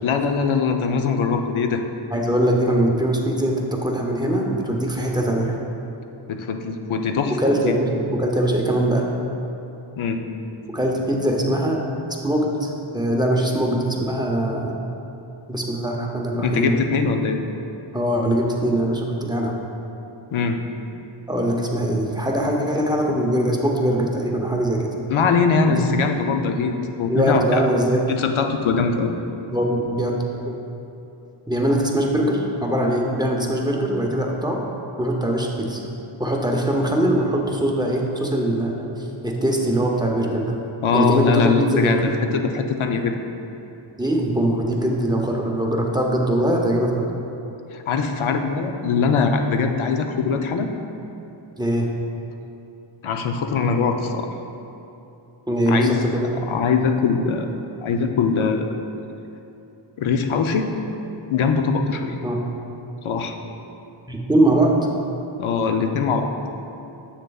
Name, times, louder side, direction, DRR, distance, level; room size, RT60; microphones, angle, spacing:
voice 1, 0.0-1.8 6.3-7.4 7.6-7.7 10.0-10.2 16.3-17.4 20.3-20.6 25.1-27.6 28.1-29.1 40.8-43.2 47.7-50.7 53.0-54.3 55.7-56.1 56.3-57.5 57.8-58.7 60.0-60.7 61.3-62.2 63.0-63.4 65.4-66.3, left 5 dB, 80° left, 5 dB, 0.6 m, -22 dB
voice 2, 2.1-5.6 7.4-9.1 10.7-11.8 12.2-14.8 15.5-16.8 17.9-19.6 21.3-24.9 25.7-25.8 27.1-28.0 29.5-30.6 31.5-34.6 35.0-35.8 36.2-40.6 40.9-42.0 44.0-47.1 51.6-51.9 55.5-56.3 62.2-62.4 64.1-64.7, right 1 dB, 10° right, -1 dB, 0.6 m, -22 dB
7.8 x 6.5 x 2.3 m, 2.8 s
wide cardioid pair, 105°, 48 cm